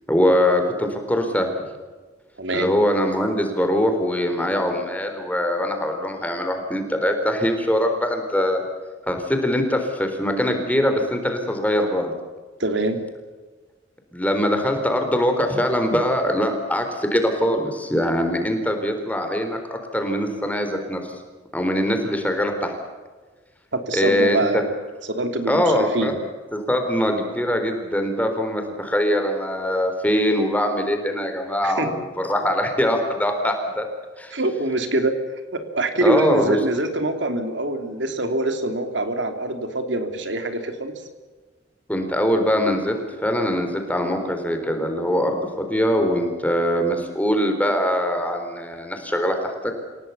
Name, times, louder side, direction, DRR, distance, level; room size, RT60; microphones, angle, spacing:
voice 1, 0.1-1.5 2.5-8.6 9.1-12.1 14.1-19.6 19.9-21.0 21.5-22.7 23.9-24.6 25.5-26.1 26.5-33.8 34.2-34.4 36.0-36.6 41.9-49.4, equal, 10° left, 5 dB, 4.0 m, -22 dB
voice 2, 2.4-2.7 12.6-13.0 23.7-24.7 25.1-26.2 31.6-31.9 34.3-35.1 35.5-40.9 45.8-46.3, right 2 dB, 75° right, 7 dB, 3.0 m, -25 dB
29.0 x 17.5 x 7.1 m, 1.3 s
head